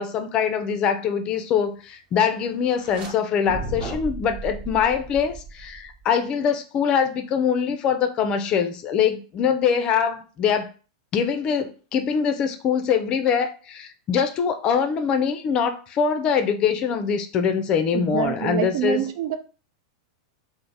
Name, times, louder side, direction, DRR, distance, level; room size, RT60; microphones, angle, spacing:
voice 1, 0.0-10.7 11.1-19.0, left 7 dB, 35° left, 0.5 m, -23 dB
sound 1, 2.7-3.1 3.5-6.0, right 3 dB, 45° right, 1.1 m, -35 dB
voice 2, 17.9-19.4, right 10 dB, 60° right, 0.5 m, -26 dB
3.3 x 2.0 x 3.9 m
hypercardioid pair, 125°, 3 cm